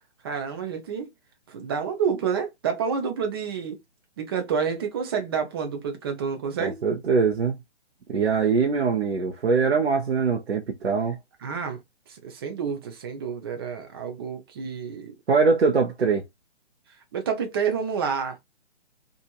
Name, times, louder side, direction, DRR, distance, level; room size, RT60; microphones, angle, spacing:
voice 1, 0.2-1.1 1.5-3.8 4.2-6.8 11.4-11.8 12.1-15.1 17.1-18.4, right 6 dB, 20° right, 0.6 m, -29 dB
voice 2, 6.6-7.6 8.1-11.2 15.3-16.2, right 5 dB, 65° right, 0.8 m, -22 dB
3.0 x 2.5 x 2.3 m
figure-of-eight pair, 140°, 34 cm